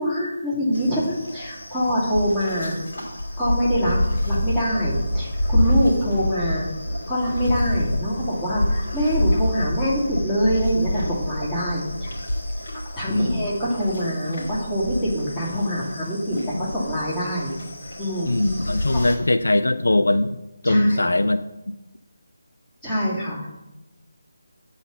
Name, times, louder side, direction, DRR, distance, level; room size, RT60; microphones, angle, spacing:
voice 1, 0.0-2.8 3.4-4.0 4.3-6.7 7.1-12.1 12.9-17.5 18.0-18.3 18.7-19.0 20.6-21.1 22.8-23.5, equal, 10° left, -9 dB, 2.7 m, -24 dB
sound 1, 0.7-19.2, left 1 dB, 50° left, 2.7 m, -27 dB
voice 2, 13.1-13.5 16.5-16.6 18.3-21.4, left 2 dB, 75° left, 10 dB, 0.4 m, -21 dB
8.2 x 4.0 x 7.0 m, 0.96 s
figure-of-eight pair, 155°, 0 cm